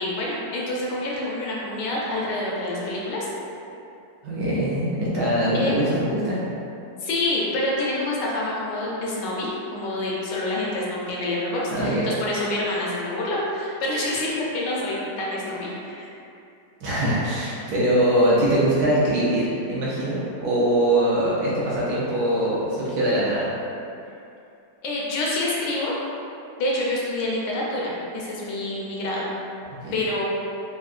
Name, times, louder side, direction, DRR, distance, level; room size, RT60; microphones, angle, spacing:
voice 1, 0.0-3.3 5.5-5.8 7.0-16.1 24.8-26.0 26.6-29.3 29.9-30.2, left 1 dB, 75° left, -5 dB, 1.2 m, -27 dB
voice 2, 4.2-6.4 11.7-12.1 16.8-23.5 29.8-30.0, right 1 dB, 70° right, -8 dB, 1.0 m, -22 dB
3.5 x 2.3 x 2.3 m, 2.7 s
omnidirectional pair, 1.9 m